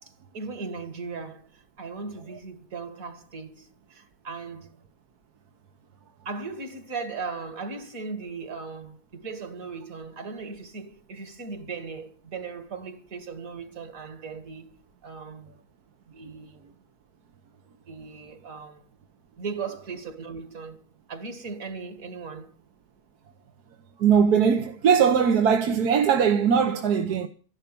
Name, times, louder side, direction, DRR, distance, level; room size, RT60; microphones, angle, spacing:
voice 1, 0.0-4.8 6.3-15.6 16.1-16.7 17.9-18.8 19.4-20.8 21.1-22.5, right 4 dB, 60° right, 2.5 m, -38 dB
voice 2, 24.0-27.3, right 7 dB, 80° right, 1.6 m, -20 dB
13.5 x 11.5 x 6.9 m
omnidirectional pair, 1.6 m